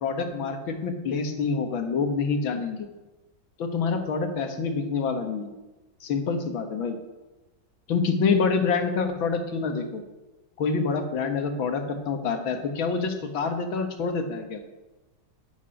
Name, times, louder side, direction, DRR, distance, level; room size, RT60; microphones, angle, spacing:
voice 1, 0.0-2.9 3.6-5.5 6.0-7.0 7.9-10.0 10.6-14.6, left 5 dB, 90° left, 7 dB, 2.3 m, -27 dB
11.5 x 7.2 x 9.8 m, 1.1 s
omnidirectional pair, 2.1 m